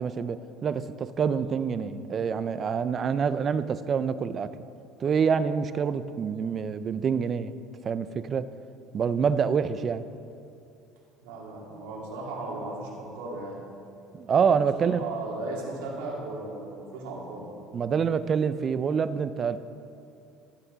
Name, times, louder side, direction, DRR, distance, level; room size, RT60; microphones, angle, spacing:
voice 1, 0.0-4.5 5.0-7.5 7.8-8.5 8.9-10.0 14.1-15.0 17.7-19.6, right 6 dB, 35° right, 13 dB, 0.5 m, -26 dB
voice 2, 11.2-13.6 14.6-17.5, right 2 dB, 90° right, -3 dB, 2.7 m, -36 dB
14.5 x 8.4 x 4.0 m, 2.6 s
supercardioid pair, 110°, 0 cm